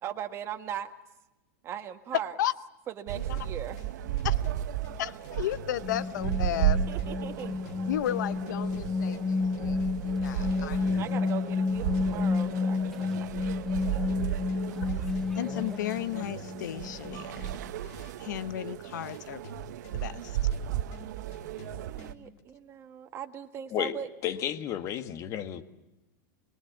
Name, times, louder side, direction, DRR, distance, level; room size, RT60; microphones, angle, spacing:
voice 1, 0.0-0.9 1.6-2.4 2.9-3.8 6.9-7.5 10.3-13.4 13.9-14.2 21.9-24.1, right 9 dB, 25° right, 5 dB, 1.8 m, -39 dB
sound 1, 3.1-22.4, left 3 dB, 60° left, 4.1 m, -50 dB
sound 2, 3.1-22.1, right 12 dB, 70° right, 1.0 m, -34 dB
voice 2, 5.0-6.8 7.9-11.0 14.8-17.5 18.2-19.4 19.9-20.4, left 13 dB, 75° left, 14 dB, 0.9 m, -34 dB
sound 3, 5.8-17.7, left 4 dB, 5° left, 1.1 m, -31 dB
voice 3, 24.2-25.6, left 10 dB, 30° left, 9 dB, 1.7 m, -32 dB
25.5 x 21.5 x 8.3 m, 1.0 s
supercardioid pair, 150°, 10 cm